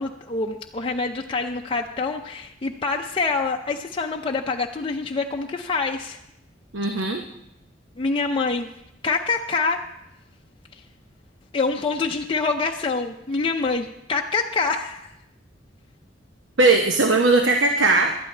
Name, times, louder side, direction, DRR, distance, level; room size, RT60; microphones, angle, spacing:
voice 1, 0.0-6.2 8.0-8.7 9.0-9.8 10.7-10.8 11.5-15.1, left 4 dB, 30° left, 1 dB, 0.5 m, -26 dB
voice 2, 6.7-7.2 16.6-18.1, right 3 dB, 75° right, 4 dB, 0.9 m, -18 dB
18.5 x 12.0 x 3.3 m, 0.83 s
head